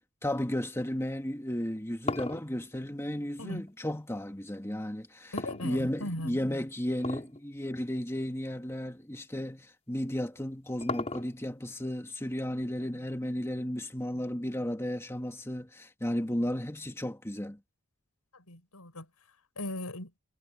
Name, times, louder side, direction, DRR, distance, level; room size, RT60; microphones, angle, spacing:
voice 1, 0.2-5.3 5.6-17.6, left 1 dB, 10° left, 2.1 m, -34 dB
Golf ball in hole, 1.5-4.0 5.4-6.2 7.0-7.4 7.7-7.8 8.6-8.7 10.1-11.6, left 2 dB, 30° left, 4.5 m, -36 dB
voice 2, 5.3-6.4 14.1-14.2 18.3-19.1 19.6-20.1, left 1 dB, 85° left, 5.8 m, -38 dB
head